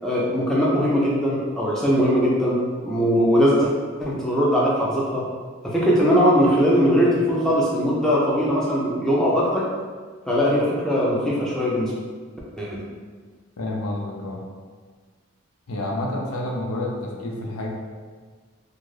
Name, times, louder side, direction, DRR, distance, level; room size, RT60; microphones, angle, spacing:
voice 1, 0.0-2.6 2.8-3.7 4.0-5.2 5.6-9.6 10.3-11.9 12.6-12.8, equal, 5° left, -6 dB, 0.5 m, -20 dB
voice 2, 13.6-14.4 15.7-17.7, left 1 dB, 85° left, -1 dB, 0.5 m, -29 dB
2.4 x 2.4 x 3.1 m, 1.6 s
head